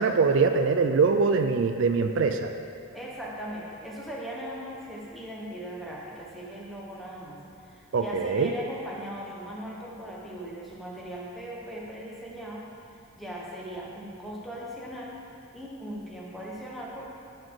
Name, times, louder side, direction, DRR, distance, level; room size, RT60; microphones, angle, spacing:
voice 1, 0.0-2.5 7.9-8.5, right 4 dB, 60° right, 6 dB, 0.4 m, -23 dB
voice 2, 2.9-12.7 13.1-15.2 15.5-17.0, equal, ahead, -5 dB, 1.1 m, -39 dB
12.5 x 4.4 x 4.8 m, 2.5 s
head